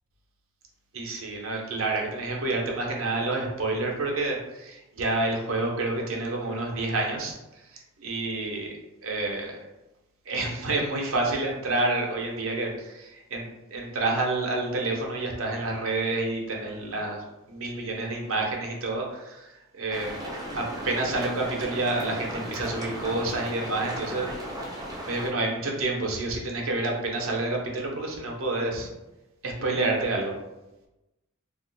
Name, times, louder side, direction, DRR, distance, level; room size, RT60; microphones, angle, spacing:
voice 1, 0.9-7.4 7.7-8.7 9.0-9.6 10.3-20.2 20.5-24.3 25.0-28.9 29.4-30.3, right 2 dB, 70° right, 0 dB, 0.7 m, -29 dB
sound 1, 19.9-25.3, equal, 15° right, 0.5 m, -36 dB
2.4 x 2.2 x 3.8 m, 1.0 s
head